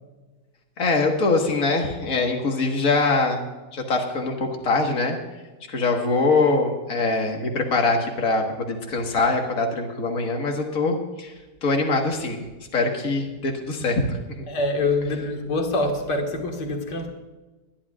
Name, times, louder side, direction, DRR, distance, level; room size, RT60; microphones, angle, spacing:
voice 1, 0.8-3.4 3.7-5.2 5.7-11.3 11.6-12.4 12.7-14.2, left 3 dB, 50° left, 2 dB, 2.0 m, -23 dB
voice 2, 14.5-17.1, left 2 dB, 75° left, 2 dB, 2.4 m, -25 dB
22.5 x 11.5 x 2.5 m, 1.2 s
omnidirectional pair, 1.8 m